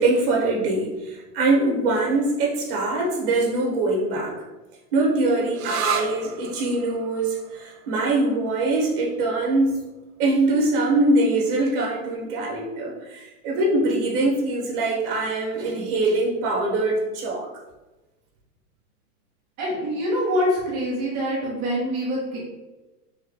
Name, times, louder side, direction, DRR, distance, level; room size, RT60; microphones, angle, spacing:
voice 1, 0.0-4.4 4.9-9.8 10.2-17.5, right 2 dB, 35° right, -2 dB, 1.2 m, -23 dB
sound 1, 5.5-12.9, right 7 dB, 65° right, 0.7 m, -36 dB
voice 2, 19.6-22.4, equal, 10° right, -14 dB, 0.3 m, -25 dB
3.5 x 3.2 x 3.8 m, 1.1 s
supercardioid pair, 160°, 44 cm